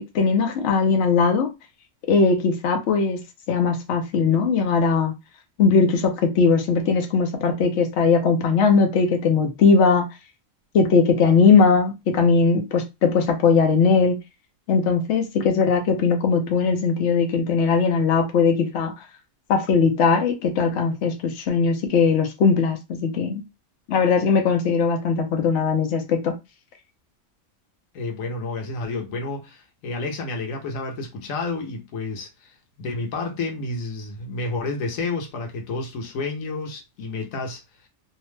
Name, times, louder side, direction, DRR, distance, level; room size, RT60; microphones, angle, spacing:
voice 1, 0.0-1.5 2.1-3.2 3.5-5.1 5.6-10.1 10.7-14.2 14.7-18.9 19.5-23.4 23.9-26.4, left 5 dB, 65° left, 0.9 m, -19 dB
voice 2, 27.9-37.6, left 3 dB, 90° left, 1.2 m, -30 dB
2.8 x 2.1 x 3.1 m
omnidirectional pair, 1.4 m